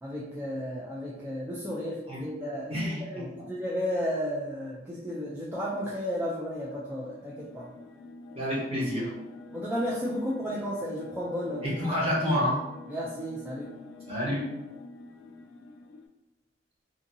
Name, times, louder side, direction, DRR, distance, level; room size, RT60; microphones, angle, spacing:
voice 1, 0.0-2.8 3.1-7.7 9.5-12.0 12.9-13.7, equal, 10° right, -7 dB, 0.3 m, -33 dB
voice 2, 2.7-3.2 8.3-9.1 11.6-12.6 14.1-14.4, equal, 30° right, -6 dB, 0.9 m, -28 dB
sound 1, 6.9-16.1, left 3 dB, 85° left, 0.4 m, -47 dB
2.6 x 2.6 x 2.6 m, 1.0 s
head